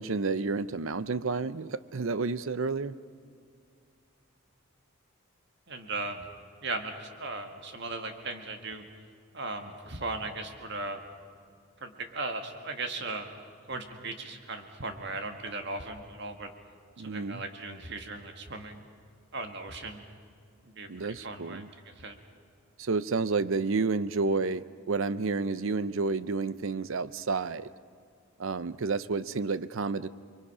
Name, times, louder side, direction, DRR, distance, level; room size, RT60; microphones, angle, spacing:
voice 1, 0.0-3.0 17.0-17.4 20.9-21.7 22.8-27.7 28.4-30.1, right 4 dB, 70° right, 15 dB, 0.6 m, -30 dB
voice 2, 5.7-6.3 6.6-8.8 9.3-11.0 11.8-13.3 13.7-16.5 17.0-18.8 19.3-20.0 20.6-21.6 22.0-22.2, right 3 dB, 55° right, 5 dB, 1.9 m, -37 dB
29.0 x 22.5 x 5.6 m, 2.2 s
head